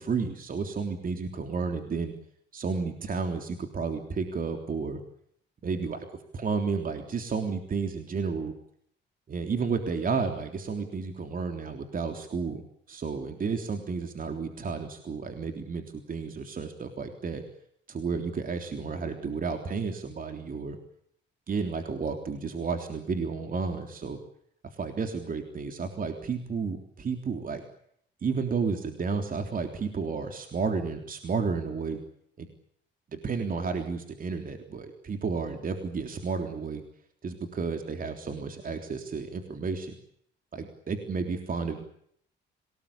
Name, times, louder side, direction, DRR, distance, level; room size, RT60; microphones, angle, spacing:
voice 1, 0.0-2.1 2.5-5.0 5.6-6.1 6.3-8.5 9.3-12.6 12.9-17.4 17.9-20.8 21.5-24.2 24.8-27.6 28.2-32.0 32.4-32.5 33.1-36.8 37.2-39.9 40.5-41.8, right 5 dB, 45° right, 6 dB, 3.6 m, -32 dB
27.0 x 19.5 x 8.7 m, 0.69 s
cardioid pair, 90°, 20 cm